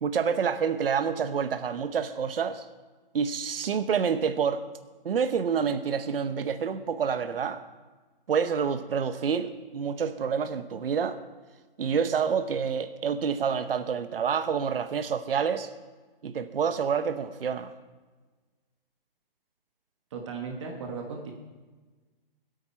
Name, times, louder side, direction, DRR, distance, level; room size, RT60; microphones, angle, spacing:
voice 1, 0.0-2.6 3.1-4.6 5.0-7.6 8.3-11.2 11.8-15.7 16.2-17.7, right 6 dB, 75° right, 10 dB, 1.0 m, -28 dB
voice 2, 20.1-21.3, right 5 dB, 30° right, 2 dB, 1.3 m, -36 dB
22.5 x 8.8 x 4.4 m, 1.3 s
hypercardioid pair, 165°, 29 cm